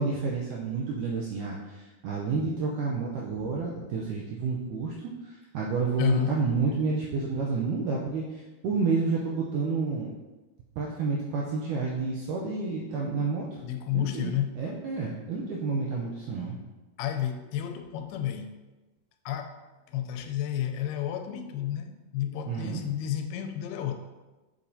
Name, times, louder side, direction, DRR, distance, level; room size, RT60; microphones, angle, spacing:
voice 1, 0.0-10.1 10.8-13.6 13.9-16.6 22.5-22.8, right 4 dB, 85° right, -2 dB, 1.8 m, -30 dB
voice 2, 6.0-6.4 13.6-14.6 17.0-18.6 19.3-19.6 19.9-24.0, left 10 dB, 90° left, 6 dB, 2.5 m, -31 dB
7.2 x 5.1 x 2.7 m, 1.2 s
omnidirectional pair, 4.4 m